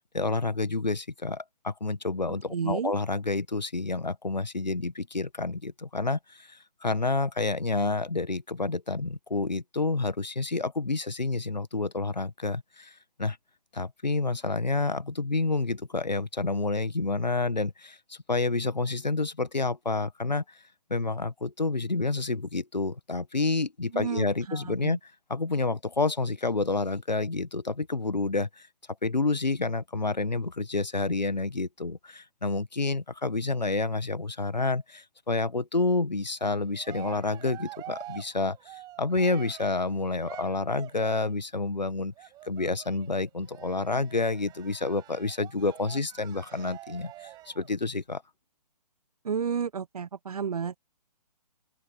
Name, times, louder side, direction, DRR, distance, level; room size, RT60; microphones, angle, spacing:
voice 1, 0.1-13.4 13.7-20.4 20.9-25.0 25.3-28.7 29.0-42.1 42.4-48.2, left 3 dB, 85° left, 1.4 m, -29 dB
voice 2, 2.5-2.9 23.9-25.0 49.2-50.8, right 6 dB, 60° right, 0.9 m, -31 dB
Cheering, 36.4-41.4 42.2-47.7, right 15 dB, 20° right, 5.4 m, -47 dB
open air
figure-of-eight pair, 135°, 21 cm